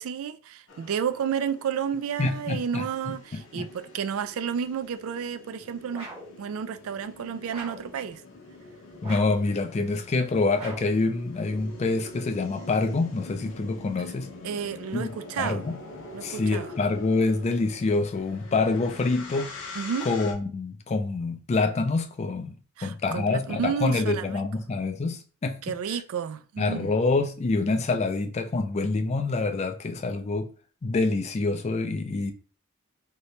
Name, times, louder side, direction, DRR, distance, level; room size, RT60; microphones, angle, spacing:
voice 1, 0.0-6.1 6.4-8.2 14.0-14.1 14.4-15.7 16.1-16.7 19.7-20.1 22.8-24.4 25.6-26.9, right 7 dB, 65° right, 0.3 m, -31 dB
sound 1, 0.7-20.3, left 3 dB, 60° left, 0.7 m, -45 dB
voice 2, 2.2-3.1 3.5-3.7 9.0-14.3 14.9-15.8 16.2-19.5 20.0-25.6 26.6-30.5 30.8-32.3, left 3 dB, 30° left, 0.3 m, -26 dB
sound 2, 5.9-6.4 7.5-7.9 9.0-9.5 10.5-11.0, right 1 dB, 25° right, 0.8 m, -41 dB
2.8 x 2.8 x 3.2 m
head